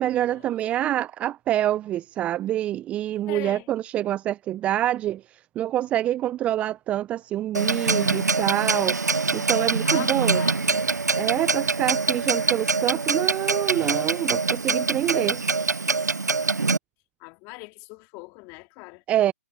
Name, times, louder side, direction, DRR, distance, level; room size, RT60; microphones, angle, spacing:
voice 1, 0.0-5.2 5.6-9.0 9.3-10.4 11.2-15.4 19.1-19.3, right 12 dB, 15° right, 0.7 m, -26 dB
voice 2, 3.3-3.7 9.8-10.9 17.2-19.0, left 29 dB, 25° left, 2.5 m, -41 dB
Clock, 7.5-16.8, right 4 dB, 85° right, 0.6 m, -24 dB
figure-of-eight pair, 135°, 9 cm